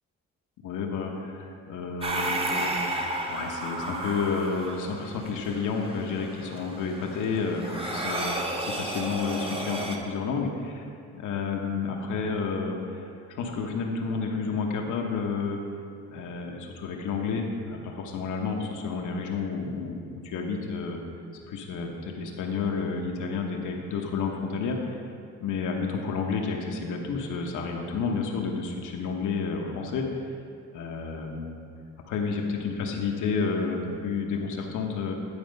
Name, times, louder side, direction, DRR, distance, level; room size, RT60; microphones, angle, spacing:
voice 1, 0.6-10.8 11.2-15.6 16.1-21.0 21.5-25.0 25.4-30.0 30.7-31.5 32.1-35.1, left 5 dB, 80° left, 1 dB, 1.1 m, -30 dB
sound 1, 2.0-10.0, right 1 dB, 20° right, 1.0 m, -33 dB
10.0 x 4.4 x 5.3 m, 2.3 s
cardioid pair, 90°, 30 cm